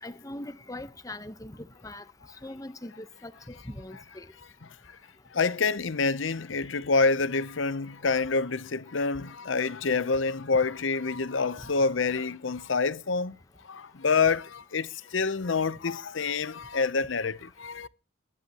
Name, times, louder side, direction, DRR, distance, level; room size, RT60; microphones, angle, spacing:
voice 1, 0.0-1.6 1.8-2.0 2.4-4.3, left 1 dB, 15° left, 1.0 m, -41 dB
voice 2, 5.3-13.4 13.6-17.9, left 4 dB, 70° left, 0.8 m, -27 dB
23.5 x 11.0 x 3.0 m
head